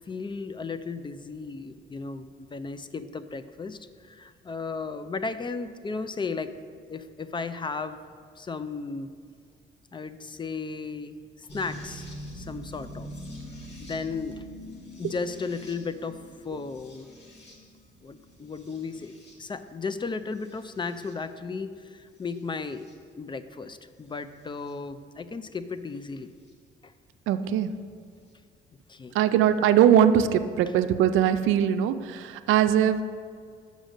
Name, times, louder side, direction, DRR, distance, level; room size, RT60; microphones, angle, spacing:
voice 1, 0.1-6.5 6.9-8.0 8.4-9.1 9.9-12.1 12.3-13.1 13.8-14.4 15.0-17.1 18.0-22.9 23.2-26.3 26.8-26.9 28.9-29.1, left 4 dB, 25° left, 11 dB, 0.4 m, -35 dB
sound 1, 11.5-19.6 20.4-21.1 22.3-22.9 24.7-24.8 26.5-26.6, equal, 60° left, 1.9 m, -44 dB
voice 2, 27.3-27.7 29.1-33.0, right 9 dB, 90° right, 10 dB, 0.4 m, -21 dB
6.5 x 5.1 x 6.4 m, 2.2 s
cardioid pair, 90°, 20 cm